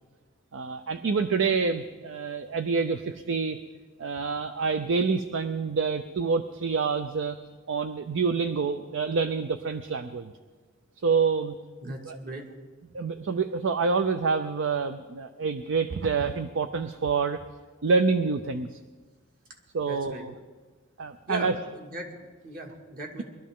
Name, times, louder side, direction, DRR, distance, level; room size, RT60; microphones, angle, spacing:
voice 1, 0.5-3.6 4.0-7.4 7.7-10.3 11.0-11.5 11.8-12.2 12.9-17.4 17.8-18.8 19.7-20.3 21.0-21.6, right 4 dB, 60° right, 10 dB, 0.5 m, -27 dB
voice 2, 11.8-12.4 19.8-20.2 21.3-23.2, right 1 dB, 45° right, 1 dB, 2.1 m, -38 dB
21.0 x 13.0 x 3.7 m, 1.4 s
head